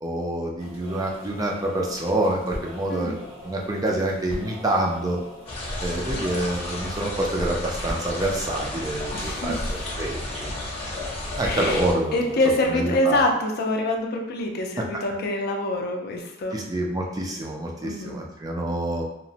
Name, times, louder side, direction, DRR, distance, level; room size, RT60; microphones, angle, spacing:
voice 1, 0.0-3.1 3.4-5.2 5.8-9.6 10.0-10.5 11.3-12.2 12.7-13.2 16.5-19.0, right 1 dB, 20° right, -1 dB, 0.3 m, -27 dB
sound 1, 0.6-13.0, left 1 dB, 80° right, 1.3 m, -41 dB
sound 2, 5.5-11.9, left 1 dB, 30° left, 0.8 m, -32 dB
voice 2, 9.1-9.8 11.4-11.8 12.1-16.6 17.8-18.2, left 1 dB, 55° left, 2 dB, 0.4 m, -25 dB
2.9 x 2.0 x 2.7 m, 0.82 s
head